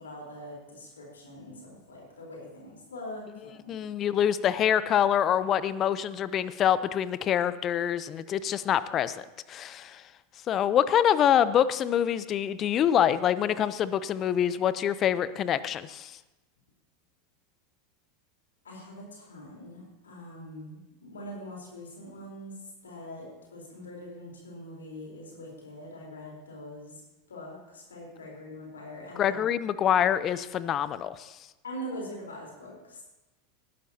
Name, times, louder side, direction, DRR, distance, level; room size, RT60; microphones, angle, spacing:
voice 1, 0.0-3.7 18.6-22.6 22.8-27.0 27.3-29.4 31.6-33.0, equal, 80° left, -1 dB, 4.0 m, -43 dB
voice 2, 3.7-10.0 10.5-16.2 29.2-31.3, left 9 dB, 35° left, 16 dB, 0.6 m, -25 dB
19.5 x 12.0 x 2.9 m, 1.0 s
figure-of-eight pair, 85°, 0 cm